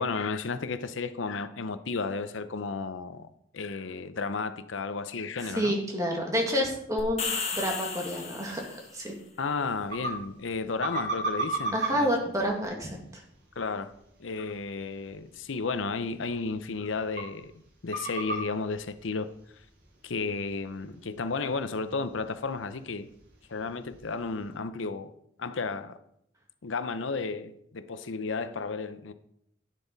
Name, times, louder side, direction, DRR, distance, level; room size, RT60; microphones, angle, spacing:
voice 1, 0.0-5.8 9.4-12.1 13.6-13.9 14.2-17.5 17.8-19.3 20.0-23.1 23.5-25.1 25.4-26.0 26.6-29.1, left 4 dB, 85° left, 0.7 m, -33 dB
voice 2, 5.4-7.2 7.5-9.2 11.7-13.2, equal, 15° right, 2.0 m, -29 dB
sound 1, 7.0-8.9, left 5 dB, 35° left, 1.6 m, -34 dB
sound 2, 9.6-24.6, right 2 dB, 60° right, 4.1 m, -40 dB
11.0 x 9.2 x 4.0 m
head